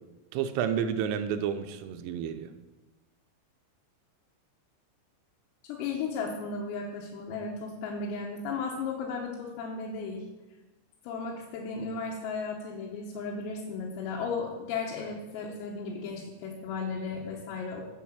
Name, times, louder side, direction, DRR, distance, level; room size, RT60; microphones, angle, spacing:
voice 1, 0.3-2.5, right 8 dB, 85° right, 9 dB, 3.3 m, -30 dB
voice 2, 5.6-10.3 11.0-17.8, left 4 dB, 85° left, -2 dB, 3.9 m, -35 dB
8.6 x 8.6 x 7.3 m, 1.1 s
omnidirectional pair, 5.9 m